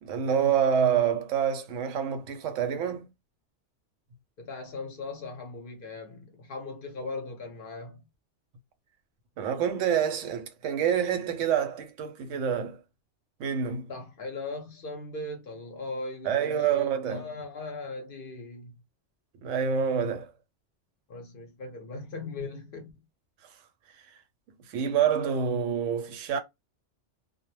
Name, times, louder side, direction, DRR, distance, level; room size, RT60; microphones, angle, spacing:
voice 1, 0.0-3.1 9.4-12.8 13.4-13.9 16.2-17.3 19.4-20.3 24.7-26.4, right 8 dB, 90° right, 0.9 m, -27 dB
voice 2, 4.4-8.1 13.9-18.7 21.1-22.9, left 3 dB, 55° left, 0.7 m, -39 dB
2.2 x 2.0 x 3.1 m
omnidirectional pair, 1.2 m